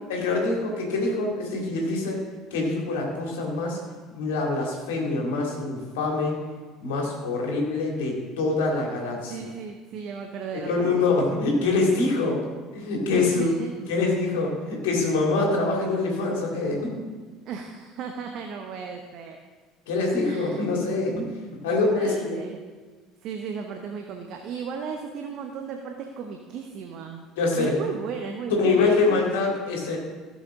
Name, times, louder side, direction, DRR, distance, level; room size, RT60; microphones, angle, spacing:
voice 1, 0.1-2.2 2.5-3.8 4.1-6.4 6.8-9.4 10.7-12.4 12.7-13.5 13.9-16.9 19.9-21.3 21.6-22.4 27.4-27.7 28.6-30.0, left 3 dB, 65° left, -1 dB, 2.6 m, -25 dB
voice 2, 9.3-10.9 13.1-13.7 17.4-19.4 20.2-20.6 21.9-22.6 23.2-27.3 27.5-29.0, right 6 dB, 50° right, 4 dB, 0.9 m, -35 dB
15.0 x 7.4 x 3.8 m, 1.4 s
figure-of-eight pair, 60°, 0 cm